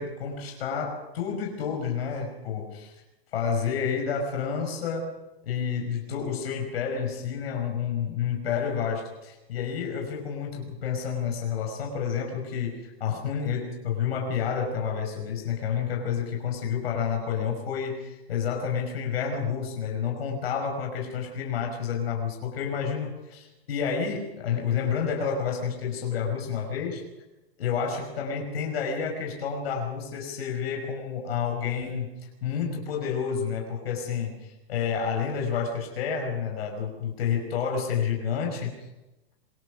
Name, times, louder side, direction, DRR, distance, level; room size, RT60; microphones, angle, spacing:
voice 1, 0.0-2.9 3.3-5.1 5.4-27.0 27.6-32.1 32.4-38.8, left 7 dB, 75° left, 2 dB, 5.5 m, -29 dB
26.5 x 17.0 x 6.2 m, 1.0 s
hypercardioid pair, 130°, 31 cm